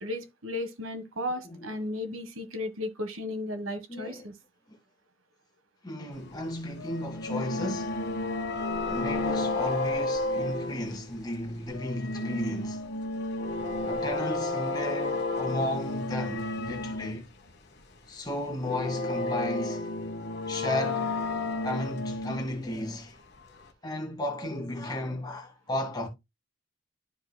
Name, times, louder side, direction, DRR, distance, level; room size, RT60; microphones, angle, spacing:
voice 1, 0.0-4.3, left 1 dB, 75° right, 1.4 m, -35 dB
voice 2, 3.9-4.3 4.7-4.8 5.8-8.2 8.8-12.9 13.9-17.3 18.1-20.0 20.5-21.3 21.6-23.2 23.8-26.1, left 1 dB, 20° left, 1.8 m, -34 dB
sound 1, 6.8-11.4 11.7-17.2 17.5-17.6 18.6-22.6 23.7-23.8, left 2 dB, 50° left, 1.3 m, -32 dB
12.5 x 5.1 x 2.2 m
head